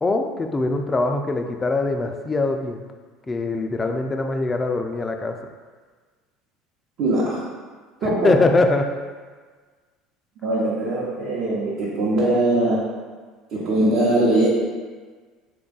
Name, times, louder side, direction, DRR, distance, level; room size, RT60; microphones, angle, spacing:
voice 1, 0.0-2.9 3.3-5.4 8.0-8.9, left 3 dB, 20° left, 4 dB, 0.3 m, -22 dB
voice 2, 7.0-7.4 8.0-8.3 10.4-12.9 13.5-14.5, right 1 dB, 65° right, -7 dB, 0.8 m, -21 dB
3.4 x 2.3 x 3.8 m, 1.5 s
supercardioid pair, 100°, 0 cm